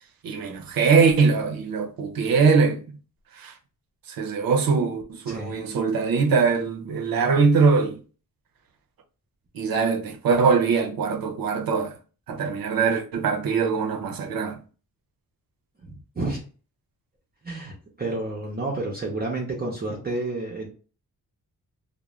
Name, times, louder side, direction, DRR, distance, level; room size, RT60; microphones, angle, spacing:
voice 1, 0.2-2.8 3.3-3.5 4.1-8.0 9.5-11.9 12.3-14.6, right 5 dB, 80° right, 0.6 m, -22 dB
voice 2, 5.3-5.6 15.8-16.4 17.4-20.7, right 2 dB, 30° right, 0.6 m, -30 dB
2.4 x 2.1 x 2.9 m
wide cardioid pair, 125°, 35 cm